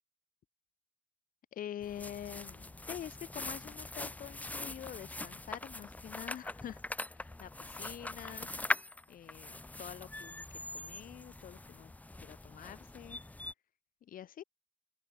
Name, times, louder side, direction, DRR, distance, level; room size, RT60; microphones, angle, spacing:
voice 1, 1.5-6.8 7.1-8.5 9.1-11.9 12.2-13.2 14.0-14.4, left 10 dB, 55° left, 4.0 m, -46 dB
sound 1, 1.8-13.5, left 2 dB, 10° left, 0.9 m, -42 dB
open air
cardioid pair, 110°, 17 cm